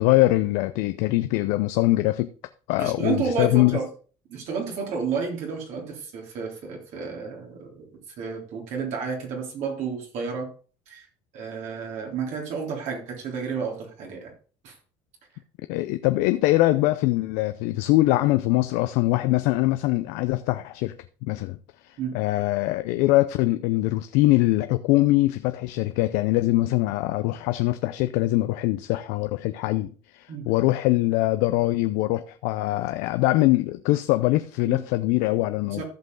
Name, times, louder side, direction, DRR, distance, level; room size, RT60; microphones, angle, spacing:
voice 1, 0.0-2.3 2.7-3.8 15.7-20.9 21.2-21.6 21.8-35.8, left 18 dB, 85° left, 0.5 m, -23 dB
voice 2, 2.8-3.9 4.3-10.5 10.9-11.1 11.3-14.3 14.6-14.8 22.0-22.2 30.3-30.5 34.6-34.8 35.7-35.8, right 5 dB, 70° right, 3.5 m, -31 dB
14.5 x 5.4 x 3.9 m
supercardioid pair, 85°, 12 cm